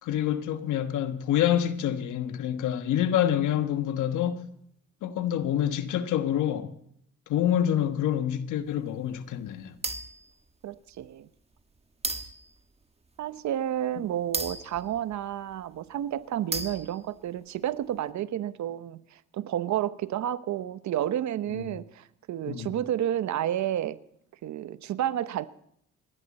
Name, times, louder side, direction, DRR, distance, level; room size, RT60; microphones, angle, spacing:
voice 1, 0.0-4.5 5.0-6.7 7.3-9.7 21.5-21.7 22.5-22.7, left 10 dB, 80° left, 1.4 m, -27 dB
sound 1, 9.8-10.3 11.0-11.1 12.0-12.6 14.3-15.5 16.5-17.2, right 3 dB, 20° right, 1.3 m, -34 dB
voice 2, 10.6-11.3 13.2-24.0 24.4-25.5, right 11 dB, 65° right, 0.9 m, -31 dB
27.5 x 11.0 x 4.2 m
cardioid pair, 90°, 30 cm